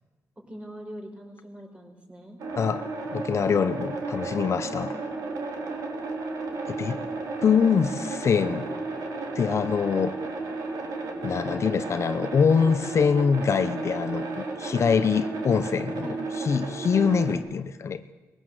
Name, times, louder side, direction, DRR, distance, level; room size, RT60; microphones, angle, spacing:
voice 1, 0.4-2.4 4.6-5.1 6.8-7.0 8.0-8.1 16.0-16.2, equal, 20° right, 2 dB, 4.6 m, -42 dB
sound 1, 2.4-17.4, right 3 dB, 85° right, 3.1 m, -33 dB
voice 2, 2.6-2.9 3.1-4.9 6.7-7.0 7.4-8.7 9.3-10.2 11.2-16.1 16.4-18.0, left 6 dB, 55° left, 11 dB, 0.8 m, -24 dB
sound 2, 8.1-13.4, right 3 dB, 60° right, 2.8 m, -48 dB
20.0 x 17.0 x 7.8 m, 1.2 s
cardioid pair, 95°, 6 cm